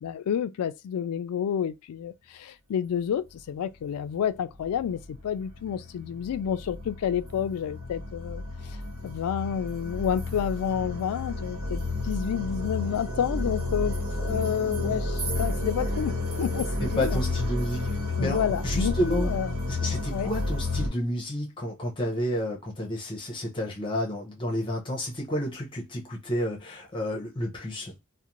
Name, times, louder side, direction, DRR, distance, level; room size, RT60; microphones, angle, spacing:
voice 1, 0.0-8.8 9.0-17.2 18.2-19.6 20.1-20.3, left 8 dB, 85° left, 0.3 m, -30 dB
sound 1, 4.0-4.1 4.6-20.9, left 2 dB, 80° right, 1.1 m, -31 dB
voice 2, 16.8-17.9 18.2-19.3 19.7-27.9, equal, 20° left, 0.6 m, -30 dB
2.5 x 2.1 x 2.9 m
head